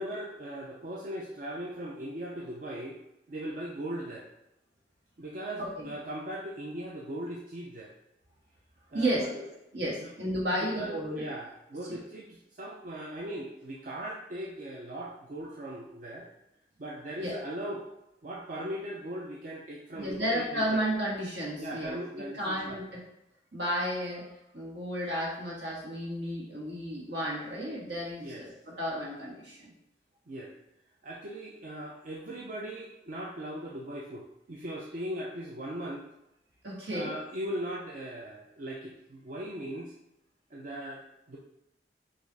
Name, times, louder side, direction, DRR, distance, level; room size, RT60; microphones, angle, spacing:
voice 1, 0.0-3.0 3.3-4.3 5.2-7.9 8.9-9.3 10.0-10.1 10.6-16.3 16.8-17.9 18.2-20.8 21.6-22.8 28.2-28.5 30.3-30.5 31.0-36.1 36.9-39.9 40.5-41.4, right 1 dB, 45° right, -3 dB, 0.5 m, -39 dB
voice 2, 5.6-5.9 8.9-9.4 9.7-11.2 11.9-12.0 17.2-17.4 19.9-22.8 23.5-24.2 24.5-29.7 36.6-37.2, equal, 75° right, -5 dB, 1.5 m, -33 dB
4.9 x 2.5 x 4.0 m, 0.87 s
head